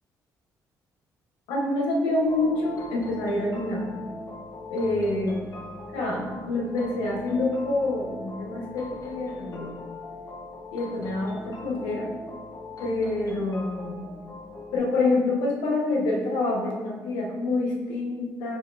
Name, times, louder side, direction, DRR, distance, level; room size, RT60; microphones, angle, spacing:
voice 1, 1.5-4.1 4.7-5.5 5.9-9.8 10.7-12.2 12.8-14.0 14.7-18.6, left 2 dB, 85° left, -2 dB, 0.9 m, -27 dB
sound 1, 2.2-14.8, left 2 dB, 45° left, 1.0 m, -41 dB
5.4 x 3.7 x 2.4 m, 1.3 s
supercardioid pair, 55°, 8 cm